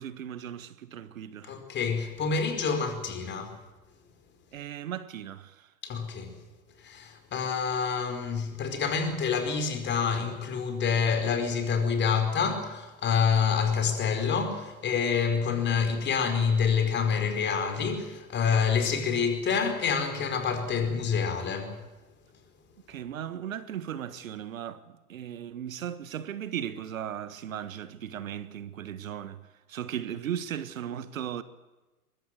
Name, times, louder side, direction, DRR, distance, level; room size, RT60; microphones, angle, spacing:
voice 1, 0.0-1.6 4.5-5.7 22.9-31.4, right 10 dB, 65° right, 1.5 m, -37 dB
voice 2, 1.5-3.6 5.8-6.4 6.8-21.8, left 6 dB, 25° left, 4.8 m, -27 dB
23.0 x 22.0 x 8.0 m
figure-of-eight pair, 105°, 43 cm